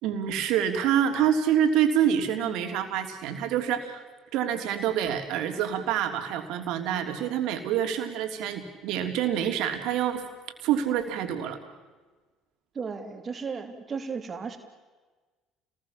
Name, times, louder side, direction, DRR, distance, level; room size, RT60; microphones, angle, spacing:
voice 1, 0.0-4.0 4.3-10.2 10.6-11.6, right 9 dB, 70° right, 5 dB, 3.2 m, -26 dB
voice 2, 12.7-14.6, right 5 dB, 40° right, 6 dB, 3.1 m, -35 dB
30.0 x 20.0 x 7.4 m, 1.3 s
hypercardioid pair, 65°, 0 cm